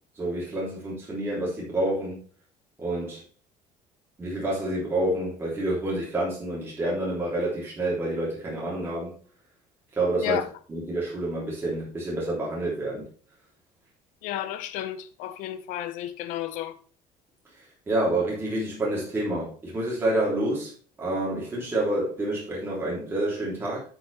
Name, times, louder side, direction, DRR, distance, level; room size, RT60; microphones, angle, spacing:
voice 1, 0.1-2.2 2.8-3.2 4.2-9.1 9.9-10.4 10.7-13.0 17.9-20.7 21.0-23.8, right 1 dB, 15° right, 3.4 m, -28 dB
voice 2, 14.2-16.8, left 12 dB, 70° left, 1.0 m, -32 dB
8.4 x 8.4 x 3.4 m
cardioid pair, 175°, 14 cm